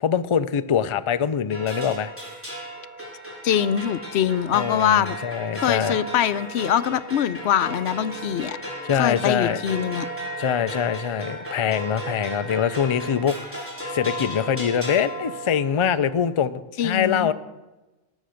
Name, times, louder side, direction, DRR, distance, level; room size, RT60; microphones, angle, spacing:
voice 1, 0.0-2.1 4.5-6.0 8.8-9.6 10.4-13.7 13.9-17.3, left 8 dB, 40° left, 11 dB, 0.4 m, -24 dB
sound 1, 1.5-15.9, right 1 dB, 10° right, 4.2 m, -35 dB
voice 2, 3.4-5.2 5.5-8.6 8.9-10.1 16.8-17.3, left 9 dB, 80° left, 14 dB, 0.9 m, -23 dB
18.5 x 7.2 x 6.4 m, 1.1 s
omnidirectional pair, 1.1 m